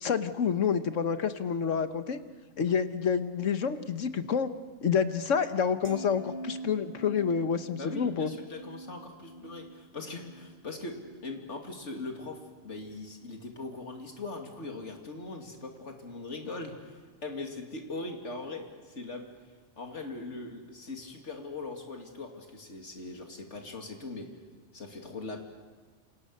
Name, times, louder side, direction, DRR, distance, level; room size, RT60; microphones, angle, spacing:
voice 1, 0.0-2.2 2.6-4.5 4.8-8.3, left 6 dB, 90° left, 10 dB, 1.5 m, -28 dB
sound 1, 5.8-12.1 12.5-12.8, right 2 dB, 35° right, 1.3 m, -45 dB
voice 2, 7.8-11.0 11.2-19.3 19.8-24.3 24.7-25.4, left 3 dB, 75° left, 2 dB, 2.9 m, -40 dB
28.0 x 27.0 x 6.6 m, 1.5 s
omnidirectional pair, 1.2 m